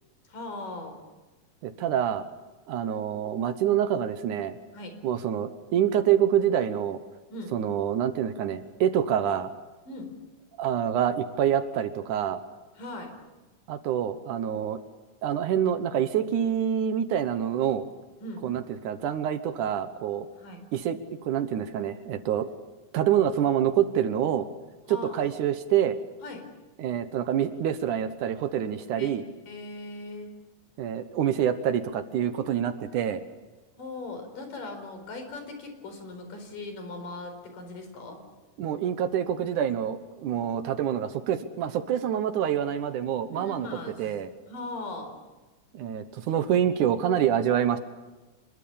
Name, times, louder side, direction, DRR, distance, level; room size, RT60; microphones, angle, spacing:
voice 1, 0.3-1.0 4.7-4.9 7.3-7.5 9.9-10.1 12.8-13.1 18.2-18.4 20.4-20.6 24.9-25.3 26.2-26.5 29.0-30.3 33.8-38.2 43.3-44.0 44.5-45.1, left 2 dB, 70° left, 6 dB, 6.0 m, -39 dB
voice 2, 1.6-2.2 2.7-4.6 5.0-7.0 7.5-9.5 10.6-12.4 13.7-14.8 15.2-17.8 18.4-20.3 20.7-22.5 22.9-24.5 24.9-26.0 26.8-29.3 30.8-33.2 38.6-43.7 44.0-44.3 45.7-47.8, right 9 dB, 70° right, 10 dB, 2.4 m, -26 dB
26.5 x 22.0 x 7.1 m, 1.2 s
omnidirectional pair, 3.9 m